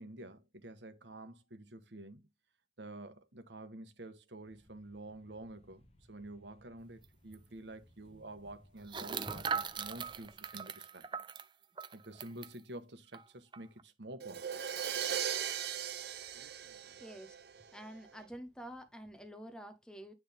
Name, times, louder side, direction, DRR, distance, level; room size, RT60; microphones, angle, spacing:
voice 1, 0.0-2.3 2.8-11.1 11.9-14.6, right 1 dB, 85° right, 1.4 m, -49 dB
Thump thud, 4.4-10.6, equal, 35° left, 1.2 m, -58 dB
sound 1, 7.0-7.1 7.3-7.5 8.9-12.6 13.1-13.2 13.5-13.8, right 6 dB, 25° right, 0.5 m, -40 dB
Crash cymbal, 14.2-18.0, right 8 dB, 65° right, 0.9 m, -38 dB
voice 2, 17.0-17.4 17.7-20.1, equal, 5° left, 0.9 m, -48 dB
9.5 x 3.7 x 3.6 m
head